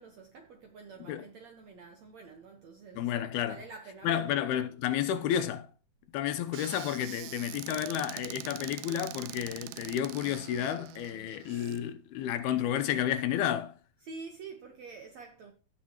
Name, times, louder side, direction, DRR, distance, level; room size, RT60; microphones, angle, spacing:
voice 1, 0.0-3.2 3.5-4.4 14.0-15.5, right 4 dB, 60° right, 2.1 m, -47 dB
voice 2, 3.0-3.6 4.0-5.7 6.1-13.8, left 10 dB, 85° left, 2.9 m, -31 dB
Squeak / Cupboard open or close, 6.5-11.8, right 15 dB, 80° right, 2.4 m, -44 dB
16.5 x 6.1 x 3.0 m
omnidirectional pair, 4.4 m